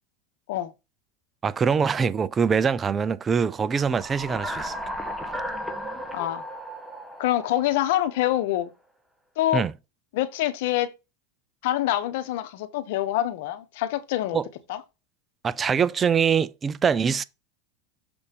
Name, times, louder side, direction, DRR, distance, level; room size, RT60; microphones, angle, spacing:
voice 1, 1.4-4.8 9.5-9.7 14.3-14.4 15.4-17.2, right 6 dB, 25° right, 0.5 m, -23 dB
sound 1, 3.7-8.3, equal, ahead, 1.3 m, -35 dB
voice 2, 6.1-6.4 7.2-8.7 9.4-9.6 10.1-10.9 11.6-14.4 14.7-14.8, left 13 dB, 70° left, 1.0 m, -25 dB
6.9 x 4.0 x 5.3 m
supercardioid pair, 120°, 0 cm